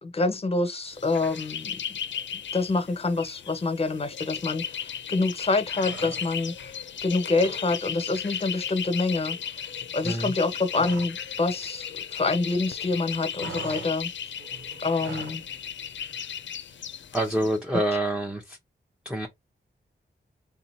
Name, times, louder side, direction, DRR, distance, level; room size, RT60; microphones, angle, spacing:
voice 1, 0.0-1.8 2.5-6.7 7.0-9.4 9.9-14.1 14.8-15.4, left 3 dB, 30° left, 0.7 m, -26 dB
sound 1, 0.9-17.6, left 8 dB, 80° left, 0.5 m, -36 dB
sound 2, 5.7-6.6 6.9-7.7 8.0-8.2 8.5-11.3 11.5-12.6 12.9-15.4, right 4 dB, 90° right, 0.7 m, -42 dB
voice 2, 10.0-10.3 17.1-18.6 19.0-19.3, right 1 dB, 5° right, 0.7 m, -27 dB
3.6 x 2.8 x 4.2 m
wide cardioid pair, 90°, 19 cm